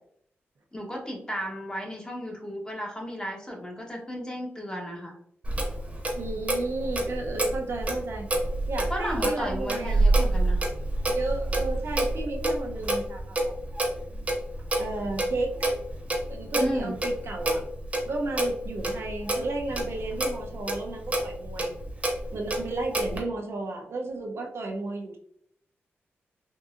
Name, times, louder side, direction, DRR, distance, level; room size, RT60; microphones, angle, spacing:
voice 1, 0.7-5.1 8.9-10.6 16.5-17.0, equal, 20° left, -1 dB, 1.1 m, -34 dB
Clock, 5.4-23.2, right 1 dB, 30° right, 1.0 m, -28 dB
voice 2, 6.2-8.3 8.7-10.0 11.1-13.5 14.8-15.7 16.3-17.6 18.0-21.8 22.3-25.2, right 2 dB, 70° right, 2 dB, 0.7 m, -33 dB
3.8 x 2.6 x 2.5 m, 0.68 s
cardioid pair, 75°, 4 cm